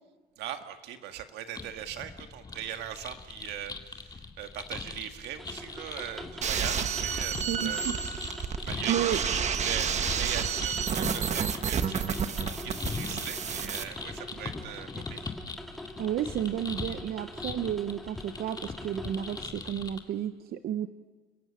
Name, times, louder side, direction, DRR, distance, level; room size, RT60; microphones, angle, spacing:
voice 1, 0.4-8.2 8.7-15.3, right 10 dB, 85° right, 7 dB, 1.8 m, -40 dB
sound 1, 1.6-20.0, left 4 dB, 25° left, 2.1 m, -41 dB
sound 2, 5.4-19.5, left 1 dB, ahead, 2.3 m, -45 dB
sound 3, 6.4-13.8, right 7 dB, 45° right, 1.3 m, -30 dB
voice 2, 7.5-8.0 8.9-9.2 16.0-20.9, right 10 dB, 65° right, 10 dB, 0.9 m, -32 dB
29.5 x 15.5 x 8.9 m, 1.4 s
cardioid pair, 110°, 17 cm